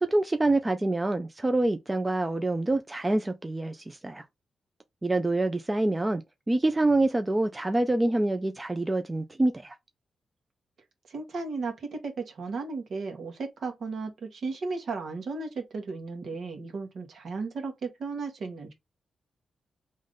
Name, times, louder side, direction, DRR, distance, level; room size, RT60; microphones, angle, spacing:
voice 1, 0.0-4.2 5.0-6.2 6.5-9.7, right 2 dB, 20° right, 0.5 m, -26 dB
voice 2, 11.1-18.7, right 4 dB, 65° right, 1.6 m, -35 dB
3.7 x 3.2 x 3.8 m
cardioid pair, 100°, 0 cm